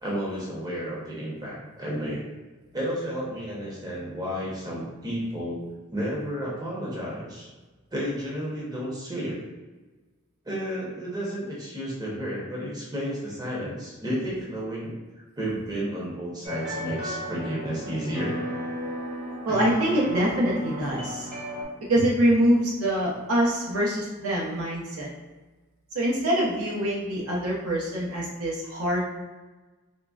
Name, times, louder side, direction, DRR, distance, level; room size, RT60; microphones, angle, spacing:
voice 1, 0.0-2.2 2.7-5.6 5.9-7.5 7.9-9.4 10.4-14.9 15.4-18.4 22.0-22.1, equal, 20° right, -5 dB, 0.7 m, -32 dB
sound 1, 16.4-21.6, equal, 40° right, 1.1 m, -34 dB
voice 2, 19.4-21.3 21.9-25.1 25.9-29.1, right 1 dB, 85° right, -4 dB, 0.7 m, -24 dB
3.7 x 2.0 x 2.3 m, 1.2 s
head